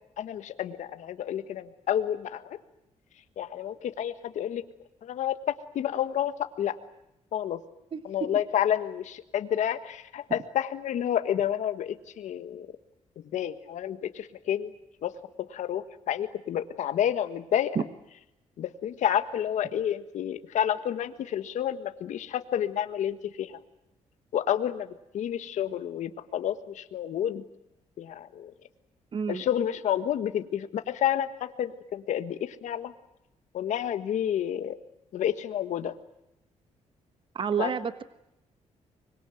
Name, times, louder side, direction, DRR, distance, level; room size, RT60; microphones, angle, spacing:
voice 1, 0.2-2.6 3.4-4.6 5.0-5.4 5.7-6.3 6.6-6.8 7.3-7.6 8.1-12.7 13.3-14.7 15.0-15.1 15.5-17.8 18.6-23.6 24.3-24.9 25.1-27.4 28.0-28.5 29.3-32.9 33.5-34.8 35.1-35.9 37.6-37.7, left 10 dB, 75° left, 10 dB, 1.6 m, -29 dB
voice 2, 29.1-29.4 37.3-38.0, right 6 dB, 40° right, 12 dB, 1.3 m, -29 dB
25.0 x 22.0 x 9.2 m, 0.85 s
cardioid pair, 115°, 12 cm